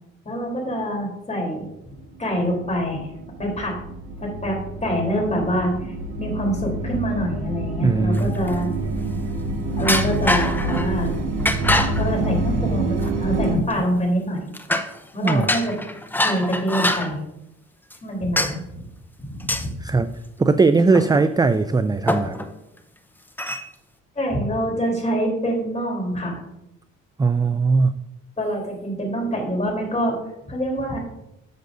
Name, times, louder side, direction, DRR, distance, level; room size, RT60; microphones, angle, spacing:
voice 1, 0.3-1.7 2.2-3.0 3.4-3.8 4.2-8.7 9.8-11.1 12.0-14.4 15.1-15.7 16.2-17.2 18.0-18.8 19.2-19.8 24.2-26.4 28.4-30.2 30.5-31.0, equal, 25° left, 0 dB, 3.5 m, -25 dB
sound 1, 2.0-13.5, right 2 dB, 85° right, 1.9 m, -27 dB
voice 2, 7.8-8.3 15.2-15.5 19.8-20.1 20.4-22.4 27.2-27.9, right 4 dB, 15° right, 11 dB, 0.3 m, -19 dB
sound 2, 8.1-8.8 9.8-10.9 11.4-12.1 13.0-13.1 13.6-14.0 14.5-15.0 15.3-17.1 17.9-18.0 18.4-18.6 19.4-19.7 20.9-21.5 21.8-21.9 22.1-22.5 23.4-23.7, left 1 dB, 5° left, 0.7 m, -24 dB
10.5 x 7.7 x 2.6 m, 0.86 s
cardioid pair, 90°, 30 cm